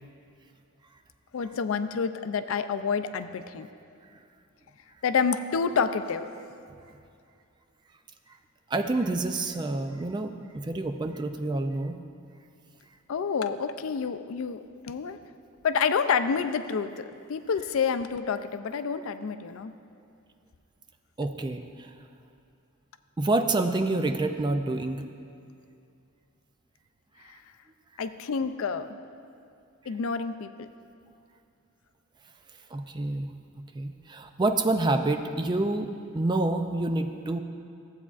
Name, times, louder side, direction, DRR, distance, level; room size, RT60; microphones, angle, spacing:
voice 1, 1.3-3.7 5.0-6.3 13.1-14.6 14.8-15.2 15.6-19.7 28.0-29.0 29.9-30.7, left 6 dB, 70° left, 10 dB, 0.4 m, -28 dB
voice 2, 8.7-12.0 21.2-21.9 23.2-25.0 27.2-27.3 32.7-33.3 33.7-37.4, right 2 dB, 20° right, 7 dB, 0.3 m, -28 dB
15.0 x 8.2 x 2.4 m, 2.5 s
head